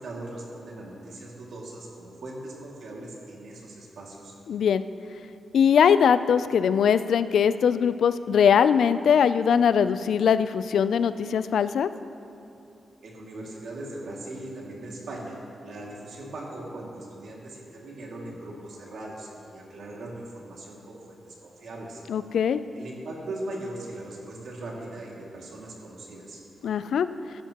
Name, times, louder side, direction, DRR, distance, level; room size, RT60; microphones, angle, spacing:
voice 1, 0.0-4.3 13.0-15.4 15.6-22.0 22.7-26.4, right 1 dB, 70° right, -3 dB, 2.3 m, -39 dB
voice 2, 4.5-4.8 5.5-11.9 22.1-22.6 26.6-27.1, left 7 dB, 75° left, 13 dB, 0.3 m, -21 dB
16.0 x 11.5 x 3.0 m, 2.7 s
wide cardioid pair, 140°, 0 cm